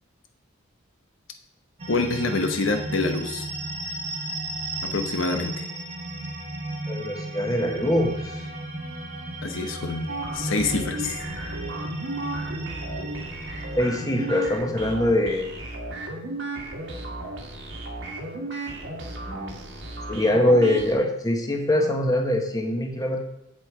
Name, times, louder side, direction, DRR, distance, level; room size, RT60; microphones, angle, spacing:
sound 1, 1.8-14.6, right 2 dB, 30° right, 1.4 m, -34 dB
voice 1, 1.9-3.5 4.8-5.7 9.4-11.2, left 3 dB, 70° left, 5 dB, 1.0 m, -26 dB
voice 2, 6.9-8.5 13.8-15.5 19.3-19.6 20.1-23.2, left 1 dB, 20° left, 2 dB, 1.2 m, -23 dB
sound 2, 10.1-20.9, right 2 dB, 60° right, 2.0 m, -34 dB
8.1 x 7.6 x 4.9 m, 0.87 s
head